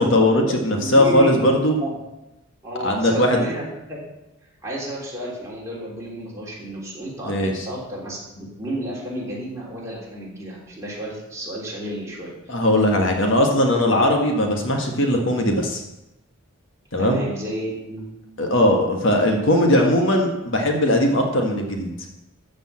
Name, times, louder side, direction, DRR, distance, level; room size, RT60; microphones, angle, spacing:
voice 1, 0.0-1.7 2.8-3.4 7.2-7.7 12.5-15.8 16.9-17.2 18.4-21.9, left 1 dB, 60° left, 2 dB, 1.6 m, -19 dB
voice 2, 0.7-1.4 1.7-2.0 2.6-4.0 4.6-12.3 17.0-18.1, right 1 dB, 15° right, -6 dB, 3.5 m, -31 dB
13.5 x 5.3 x 7.5 m, 0.94 s
head